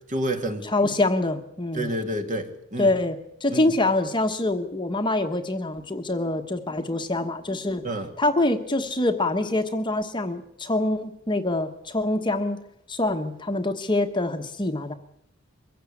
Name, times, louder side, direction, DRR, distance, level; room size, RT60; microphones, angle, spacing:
voice 1, 0.1-0.6 1.7-2.9 3.5-3.6 7.8-8.1, right 1 dB, 35° right, 6 dB, 2.1 m, -28 dB
voice 2, 0.6-1.9 2.8-7.8 8.2-12.6 12.9-14.9, left 2 dB, 20° left, 7 dB, 1.2 m, -25 dB
23.0 x 16.0 x 8.6 m, 0.78 s
head